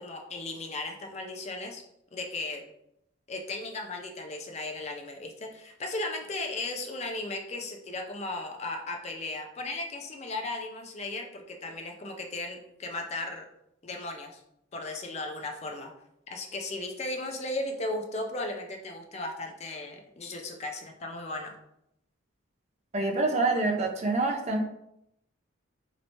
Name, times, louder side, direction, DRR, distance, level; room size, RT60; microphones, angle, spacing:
voice 1, 0.0-1.8 2.1-2.6 3.3-13.5 13.8-14.4 14.7-15.9 16.3-21.5, left 2 dB, 30° left, 3 dB, 0.4 m, -36 dB
voice 2, 22.9-24.6, right 3 dB, 35° right, 2 dB, 0.4 m, -26 dB
3.2 x 3.0 x 2.7 m, 0.80 s
head